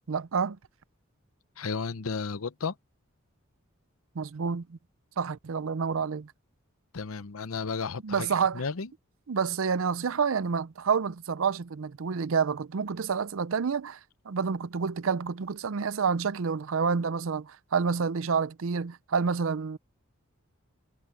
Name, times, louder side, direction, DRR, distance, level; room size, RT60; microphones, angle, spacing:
voice 1, 0.1-0.6 4.2-4.8 5.2-6.3 8.0-8.6 9.3-14.0 14.3-19.8, right 5 dB, 70° right, 0.5 m, -28 dB
voice 2, 1.6-2.7 6.9-8.3 8.5-8.9, left 5 dB, 85° left, 0.8 m, -33 dB
head